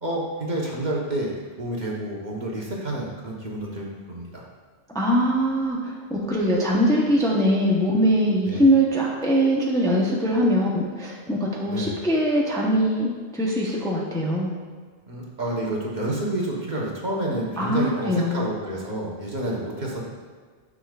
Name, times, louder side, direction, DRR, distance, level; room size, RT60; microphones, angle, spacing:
voice 1, 0.0-1.3 1.6-4.4 8.4-8.7 11.7-11.9 15.1-20.0, right 1 dB, 40° right, -3 dB, 1.2 m, -29 dB
voice 2, 4.9-14.5 17.6-18.5, equal, 5° left, -4 dB, 0.8 m, -22 dB
9.8 x 6.3 x 2.4 m, 1.5 s
omnidirectional pair, 1.1 m